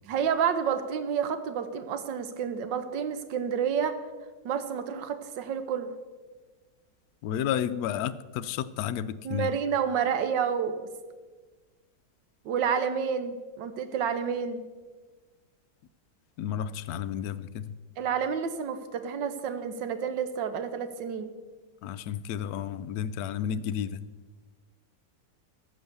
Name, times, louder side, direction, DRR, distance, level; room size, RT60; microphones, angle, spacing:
voice 1, 0.1-4.0 4.4-5.9 9.2-10.9 12.4-14.6 18.0-21.3, right 7 dB, 85° right, 1.5 m, -29 dB
voice 2, 7.2-9.5 16.4-17.8 21.8-24.0, left 9 dB, 70° left, 0.9 m, -32 dB
14.0 x 6.3 x 6.8 m
omnidirectional pair, 1.9 m